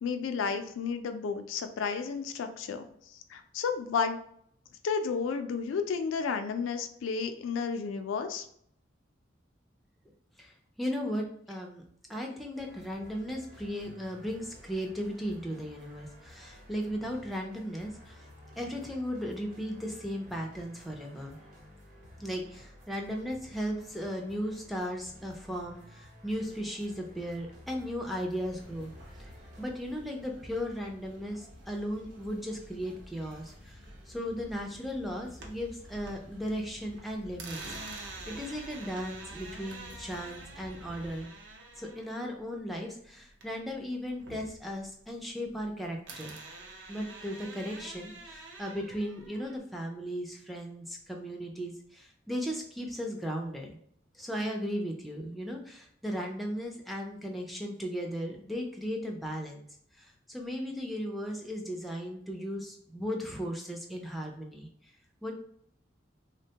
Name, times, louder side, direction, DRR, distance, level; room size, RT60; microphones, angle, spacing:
voice 1, 0.0-4.2 4.8-8.5, left 5 dB, 85° left, 8 dB, 0.3 m, -32 dB
voice 2, 10.4-11.8 12.1-18.2 18.6-21.4 22.2-28.9 29.2-29.3 29.6-37.6 37.9-41.3 41.8-46.4 46.9-53.8 54.1-59.6 59.9-64.7 65.2-65.3, equal, ahead, 0 dB, 0.3 m, -36 dB
sound 1, 12.5-29.7, left 1 dB, 40° right, 0.8 m, -53 dB
sound 2, 28.4-41.2, equal, 80° right, 1.0 m, -51 dB
sound 3, 35.1-36.5 36.8-43.7 44.0-45.7 46.1-49.6, right 3 dB, 65° right, 0.5 m, -47 dB
3.4 x 2.1 x 2.7 m, 0.67 s
head